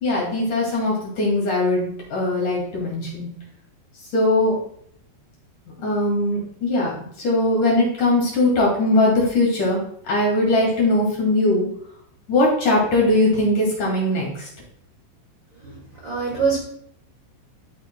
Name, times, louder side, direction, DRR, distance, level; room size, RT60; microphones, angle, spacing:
voice 1, 0.0-3.3 4.1-4.6 5.8-6.9 7.2-11.7 12.3-14.5, left 2 dB, 50° left, -3 dB, 3.3 m, -20 dB
voice 2, 15.6-16.6, right 5 dB, 40° right, -5 dB, 1.9 m, -24 dB
13.0 x 6.7 x 2.2 m, 0.66 s
omnidirectional pair, 5.4 m